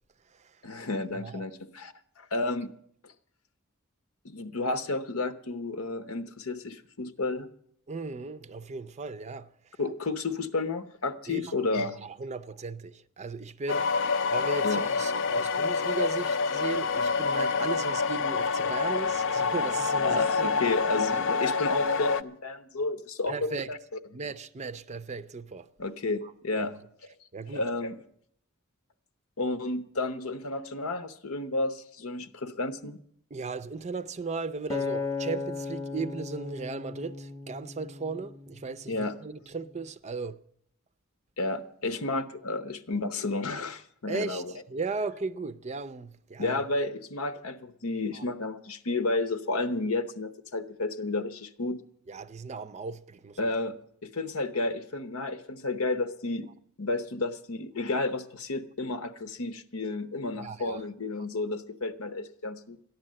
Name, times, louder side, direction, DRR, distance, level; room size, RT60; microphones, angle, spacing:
voice 1, 0.6-2.7 3.0-3.1 4.2-7.5 9.8-12.0 14.6-14.8 20.0-23.8 25.8-26.8 27.5-28.0 29.4-33.0 38.9-39.2 41.4-44.5 46.4-51.8 53.4-53.8 54.0-56.5 56.8-62.8, left 2 dB, 80° left, 0.9 m, -31 dB
voice 2, 7.9-9.8 11.3-14.0 14.3-20.6 21.1-21.3 23.3-23.7 24.1-25.7 26.2-26.7 27.3-27.6 33.3-40.4 44.1-46.6 48.1-48.2 52.1-53.5 60.4-60.8, right 4 dB, 30° right, 0.5 m, -37 dB
sound 1, 13.7-22.2, left 4 dB, 65° left, 0.5 m, -27 dB
Acoustic guitar, 34.7-39.0 39.6-39.9, left 4 dB, 15° left, 0.5 m, -36 dB
14.0 x 10.5 x 7.5 m
head